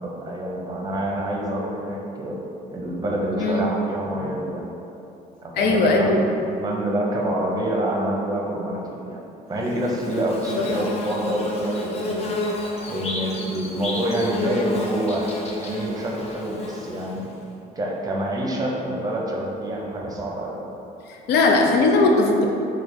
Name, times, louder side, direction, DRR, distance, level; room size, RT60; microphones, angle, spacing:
voice 1, 0.0-2.4 2.7-4.7 5.4-9.2 9.5-12.3 12.9-17.2 17.7-20.6, right 1 dB, 20° right, -2 dB, 0.8 m, -27 dB
voice 2, 5.6-6.2 10.6-10.7 21.1-22.4, left 3 dB, 80° left, 1 dB, 0.6 m, -19 dB
Bird / Buzz, 9.6-17.3, left 2 dB, 40° left, 0.6 m, -31 dB
3.4 x 3.2 x 4.0 m, 2.8 s
cardioid pair, 110°, 17 cm